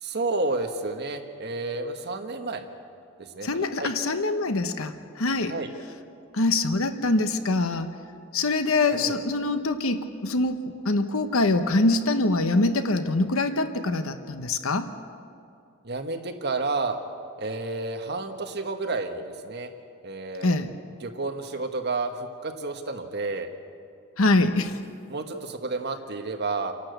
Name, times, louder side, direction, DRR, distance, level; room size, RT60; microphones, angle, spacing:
voice 1, 0.0-2.7 3.2-3.9 5.4-5.7 8.9-9.2 15.8-17.0 17.4-19.7 20.0-20.6 21.0-23.5 25.1-26.7, right 3 dB, 50° right, 6 dB, 1.4 m, -31 dB
voice 2, 3.4-5.5 6.3-7.9 8.3-14.9 20.4-20.7 24.2-24.7, left 2 dB, 70° left, 9 dB, 1.0 m, -24 dB
29.0 x 11.5 x 8.0 m, 2.4 s
head